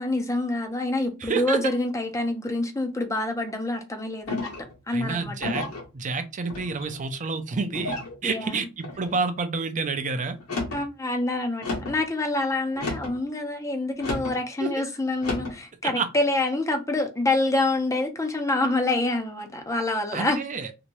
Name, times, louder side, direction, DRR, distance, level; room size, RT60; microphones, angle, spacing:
voice 1, 0.0-4.5 4.9-5.4 8.2-8.6 10.7-20.4, left 2 dB, 15° left, 0.6 m, -26 dB
voice 2, 1.2-1.6 4.9-5.7 5.9-8.0 8.2-10.4 14.6-14.7 16.0-16.1 20.1-20.7, right 4 dB, 35° right, 0.5 m, -28 dB
sound 1, 4.3-4.7 5.4-5.9 6.5-7.0 7.7-8.1 8.8-9.2 10.4-10.8 11.6-12.0 12.7-13.2 14.0-14.4 15.2-15.6, left 2 dB, 75° left, 1.2 m, -32 dB
3.0 x 2.9 x 2.6 m
head